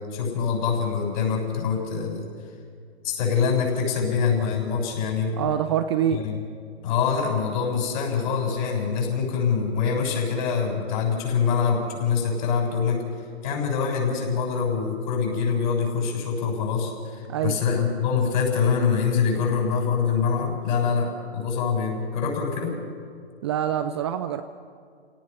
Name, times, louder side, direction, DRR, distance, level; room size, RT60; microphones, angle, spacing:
voice 1, 0.0-2.3 3.0-5.3 6.1-6.4 6.8-13.0 13.4-22.7, left 6 dB, 45° left, 0 dB, 7.1 m, -24 dB
voice 2, 5.4-6.2 17.3-17.6 23.4-24.4, right 10 dB, 25° right, 10 dB, 0.5 m, -25 dB
29.0 x 18.0 x 5.8 m, 2.1 s
hypercardioid pair, 140°, 33 cm